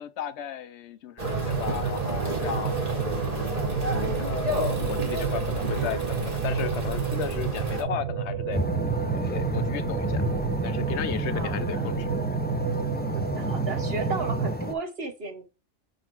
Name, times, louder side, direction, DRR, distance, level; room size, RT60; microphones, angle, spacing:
voice 1, 0.0-3.1 4.2-8.6 9.1-10.2 10.6-12.1, left 9 dB, 70° left, 0.8 m, -35 dB
sound 1, 1.2-7.8, equal, 30° right, 1.6 m, -30 dB
sound 2, 1.2-14.5, right 8 dB, 75° right, 0.9 m, -31 dB
sound 3, 8.5-14.7, left 1 dB, 10° left, 0.4 m, -30 dB
voice 2, 11.3-12.1 13.1-15.4, right 3 dB, 55° right, 1.2 m, -35 dB
6.2 x 3.9 x 4.5 m
omnidirectional pair, 1.2 m